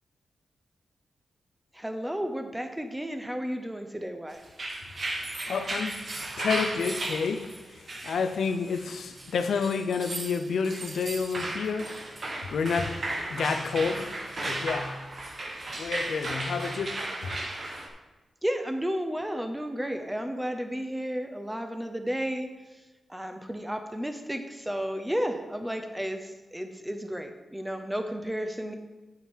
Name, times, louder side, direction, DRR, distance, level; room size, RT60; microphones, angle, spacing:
voice 1, 1.7-4.4 18.4-22.5 23.1-28.7, equal, 5° right, 0.8 m, -32 dB
sound 1, 4.4-17.9, right 2 dB, 45° right, 1.1 m, -35 dB
voice 2, 5.4-13.0 13.3-15.0 15.7-17.4, left 5 dB, 80° left, 0.6 m, -30 dB
9.0 x 5.7 x 4.5 m
wide cardioid pair, 105°, 0 cm